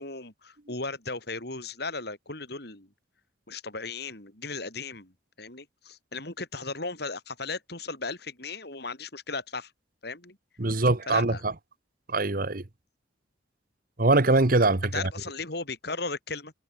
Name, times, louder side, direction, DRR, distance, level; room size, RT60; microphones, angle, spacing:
voice 1, 0.0-2.9 3.5-5.1 5.4-9.7 10.0-10.4 11.1-11.4 14.9-16.5, left 3 dB, 60° left, 5.6 m, -36 dB
voice 2, 10.6-11.5 12.1-12.6 14.0-14.9, right 2 dB, 50° right, 1.2 m, -22 dB
head